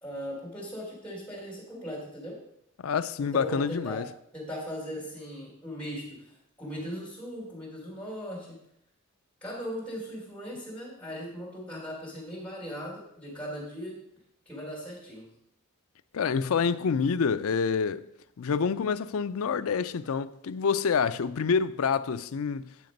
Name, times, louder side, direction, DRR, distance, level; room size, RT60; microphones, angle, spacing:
voice 1, 0.0-2.4 3.2-4.1 4.3-8.6 9.4-14.0 14.4-15.3, equal, 5° left, 3.4 m, -38 dB
voice 2, 2.8-4.1 16.1-18.1 18.4-22.7, left 6 dB, 70° left, 0.4 m, -27 dB
9.3 x 5.8 x 5.2 m
head